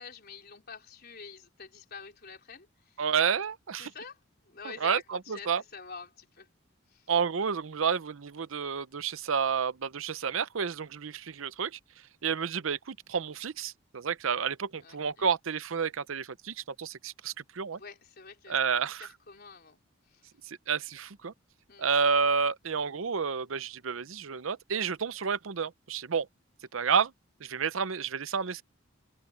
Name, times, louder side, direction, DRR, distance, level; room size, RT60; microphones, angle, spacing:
voice 1, 0.0-3.0 3.8-6.5 6.9-7.1 14.8-15.3 17.7-18.6 18.9-20.3 21.7-21.9, left 5 dB, 50° left, 4.1 m, -47 dB
voice 2, 3.0-3.9 4.8-5.6 7.1-11.8 12.2-17.8 18.5-19.1 20.5-21.3 21.8-26.3 26.7-27.1 27.4-28.6, right 6 dB, 75° right, 0.7 m, -30 dB
head